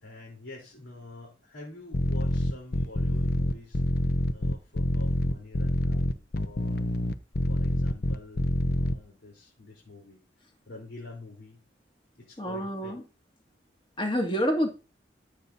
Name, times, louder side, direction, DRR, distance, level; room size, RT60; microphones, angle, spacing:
voice 1, 0.0-3.8 4.3-6.8 7.5-10.2 10.7-11.6 12.2-13.0, left 2 dB, 80° left, -2 dB, 3.9 m, -47 dB
sound 1, 1.9-8.9, left 1 dB, 55° left, 0.7 m, -26 dB
voice 2, 12.4-13.0 14.0-14.7, equal, 25° left, 2 dB, 2.3 m, -27 dB
14.0 x 8.1 x 2.8 m, 0.31 s
head